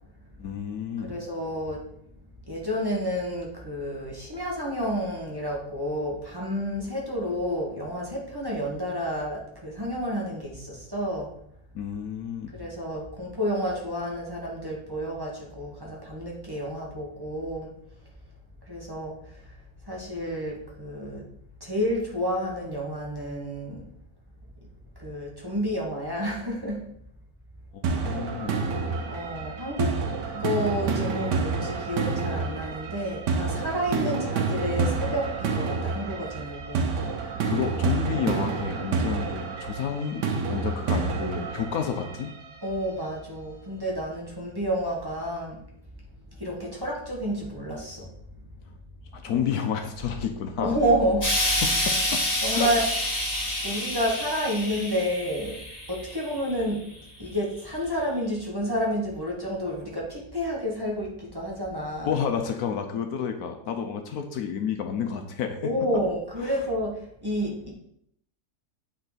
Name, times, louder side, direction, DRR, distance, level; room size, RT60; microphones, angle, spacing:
voice 1, 0.4-1.1 11.7-12.5 27.7-28.6 37.5-42.3 49.1-50.8 51.6-52.2 52.5-52.7 62.0-65.6 66.4-66.6, left 7 dB, 70° left, 5 dB, 1.2 m, -30 dB
voice 2, 1.0-1.9 2.5-11.3 12.5-17.7 18.6-19.6 19.8-21.2 21.6-23.8 25.0-26.8 28.0-28.4 29.1-30.0 30.3-36.9 42.6-45.6 46.3-48.1 49.3-49.4 50.6-51.6 52.4-52.8 53.2-53.3 53.6-56.8 57.2-62.1 65.6-67.7, equal, 15° right, -3 dB, 1.4 m, -30 dB
sound 1, 27.8-42.8, right 4 dB, 90° right, 1.4 m, -29 dB
Explosion, 51.2-56.5 57.3-57.4, left 1 dB, 25° left, 2.0 m, -28 dB
8.9 x 4.0 x 4.1 m, 0.70 s
omnidirectional pair, 1.7 m